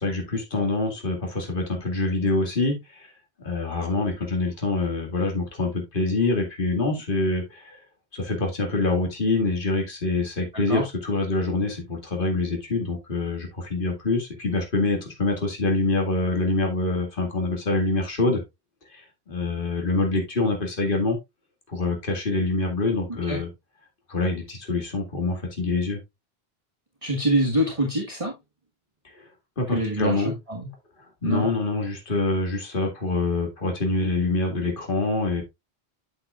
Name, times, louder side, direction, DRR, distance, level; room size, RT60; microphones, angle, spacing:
voice 1, 0.0-3.1 3.4-7.8 8.1-18.4 18.9-21.2 21.7-23.5 24.1-26.0 29.2-29.3 29.6-30.3 31.2-35.4, left 3 dB, 55° left, 2 dB, 2.3 m, -25 dB
voice 2, 10.5-10.8 23.3-23.4 27.0-28.3 29.7-30.7 31.2-31.5, right 1 dB, 30° right, 0 dB, 1.6 m, -25 dB
8.0 x 8.0 x 2.4 m, 0.21 s
omnidirectional pair, 1.1 m